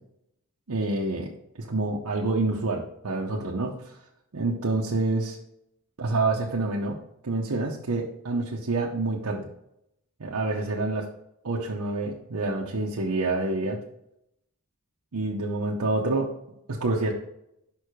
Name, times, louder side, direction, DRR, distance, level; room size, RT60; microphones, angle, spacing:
voice 1, 0.7-1.3 1.6-3.9 4.3-5.4 6.0-7.0 7.2-9.4 10.2-11.1 11.4-13.8 15.1-16.3 16.7-17.1, right 2 dB, 80° right, -2 dB, 0.8 m, -27 dB
5.6 x 4.6 x 4.9 m, 0.78 s
head